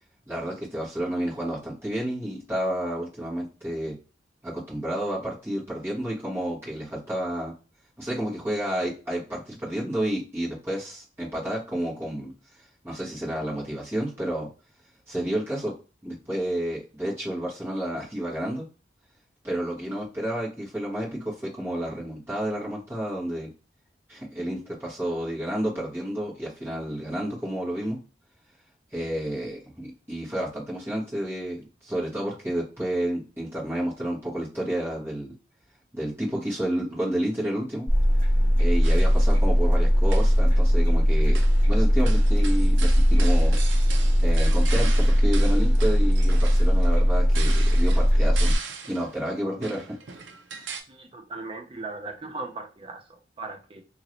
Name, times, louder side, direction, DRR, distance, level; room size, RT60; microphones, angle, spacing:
voice 1, 0.3-3.9 4.4-7.5 8.0-12.3 12.8-14.5 15.1-15.7 16.0-18.7 19.4-23.5 24.1-28.0 28.9-35.3 35.9-37.9 38.6-43.6 44.2-48.5 48.9-50.0, right 1 dB, 15° right, 1.3 m, -30 dB
sound 1, 37.9-48.6, equal, 10° left, 1.8 m, -19 dB
sound 2, 38.8-39.3 40.0-40.4 41.3-41.7 42.1-49.1 49.6-50.8, right 6 dB, 85° right, 0.5 m, -39 dB
voice 2, 50.9-53.8, right 3 dB, 30° right, 0.5 m, -38 dB
2.9 x 2.6 x 2.9 m
head